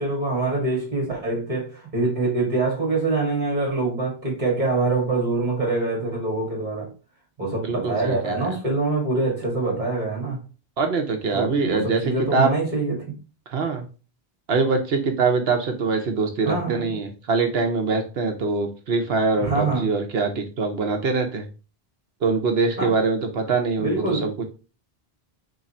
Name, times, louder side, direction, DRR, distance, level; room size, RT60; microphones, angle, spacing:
voice 1, 0.0-6.9 7.4-10.4 11.3-13.2 16.4-16.8 19.4-19.9 22.8-22.9 23.8-24.3, right 3 dB, 45° right, 2.1 m, -25 dB
voice 2, 7.6-8.5 10.8-12.5 13.5-13.9 14.5-21.4 22.2-24.4, right 4 dB, 75° right, 1.1 m, -23 dB
3.8 x 3.2 x 4.2 m
omnidirectional pair, 1.0 m